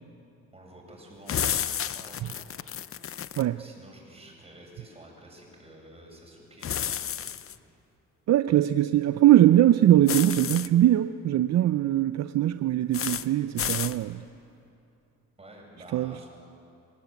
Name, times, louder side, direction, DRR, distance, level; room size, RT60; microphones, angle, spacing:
voice 1, 0.5-2.8 3.5-7.3 15.4-16.3, right 1 dB, 20° right, -1 dB, 7.9 m, -50 dB
sound 1, 1.3-3.4 6.6-7.5 10.1-10.7 12.9-13.3 13.6-14.0, left 9 dB, 45° left, 0.8 m, -31 dB
voice 2, 8.3-14.2 15.9-16.1, right 12 dB, 60° right, 11 dB, 0.6 m, -21 dB
25.0 x 17.5 x 9.4 m, 2.8 s
cardioid pair, 90°, 30 cm